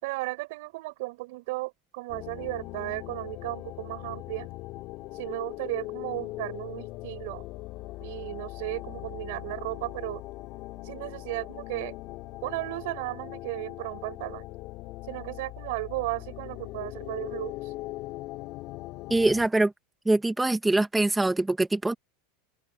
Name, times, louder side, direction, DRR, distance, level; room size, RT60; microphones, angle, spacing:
voice 1, 0.0-4.5 5.1-7.4 8.0-10.2 10.8-12.0 12.4-14.4 15.1-17.7, right 23 dB, 70° right, 5.6 m, -35 dB
sound 1, 2.1-19.5, left 19 dB, 50° left, 2.6 m, -40 dB
voice 2, 19.1-19.7 20.0-21.9, right 2 dB, 5° right, 1.1 m, -23 dB
open air
supercardioid pair, 135°, 0 cm